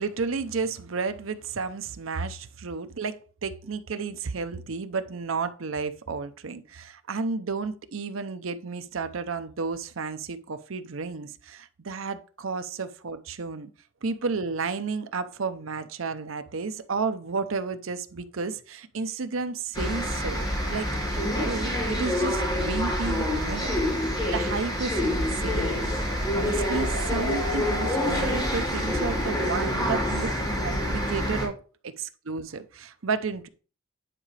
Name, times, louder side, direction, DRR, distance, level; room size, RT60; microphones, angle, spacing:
voice 1, 0.0-13.7 14.0-23.7 24.3-25.9 26.3-31.6 31.8-33.5, right 4 dB, 80° right, 0.7 m, -32 dB
sound 1, 19.7-31.5, equal, 25° left, 3.1 m, -27 dB
9.9 x 4.9 x 3.3 m
head